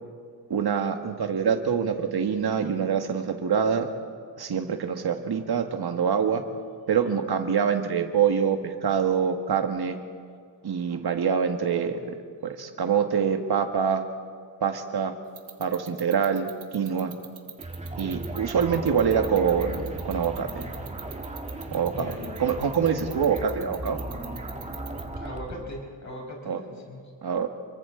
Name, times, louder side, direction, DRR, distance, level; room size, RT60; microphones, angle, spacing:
voice 1, 0.5-3.9 4.4-6.4 6.9-10.0 10.6-12.2 12.4-14.0 14.6-15.1 15.6-17.2 18.0-20.6 21.7-22.1 22.4-24.0 26.5-26.6 27.2-27.5, right 7 dB, 55° right, 6 dB, 1.8 m, -25 dB
sound 1, 15.4-25.0, right 10 dB, 85° right, 1.8 m, -41 dB
sound 2, 17.6-25.8, right 2 dB, 15° right, 1.8 m, -36 dB
voice 2, 21.9-22.4 25.2-27.1, left 1 dB, 35° left, -1 dB, 5.5 m, -39 dB
30.0 x 23.0 x 3.9 m, 2.1 s
wide cardioid pair, 115°, 46 cm